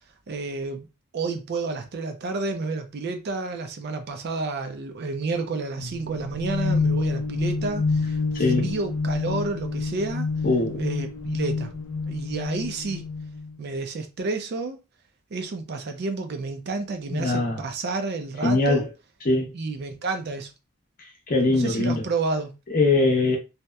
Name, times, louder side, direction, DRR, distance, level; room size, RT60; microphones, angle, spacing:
voice 1, 0.3-0.9 1.1-10.3 10.7-11.7 12.1-13.0 13.6-14.8 15.3-18.8 19.5-20.5 21.5-22.5, right 3 dB, 50° right, 0.4 m, -30 dB
sound 1, 5.8-13.6, left 4 dB, 90° left, 0.5 m, -28 dB
voice 2, 8.3-8.7 10.4-10.8 17.1-17.6 18.4-18.9 19.2-19.5 21.3-22.0 22.7-23.4, left 2 dB, 40° left, 0.6 m, -22 dB
2.7 x 2.0 x 2.2 m
head